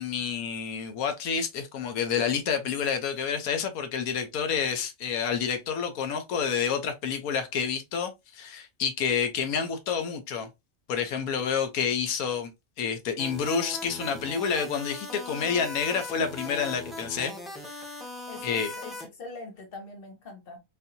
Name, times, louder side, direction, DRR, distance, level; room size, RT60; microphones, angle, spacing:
voice 1, 0.0-10.5 10.9-12.5 12.8-17.3 17.6-17.8 18.4-18.7, left 6 dB, 90° left, 1.2 m, -29 dB
sound 1, 13.2-19.0, left 1 dB, ahead, 0.7 m, -40 dB
voice 2, 18.3-20.6, left 3 dB, 45° left, 1.2 m, -43 dB
3.9 x 2.7 x 2.6 m
omnidirectional pair, 1.5 m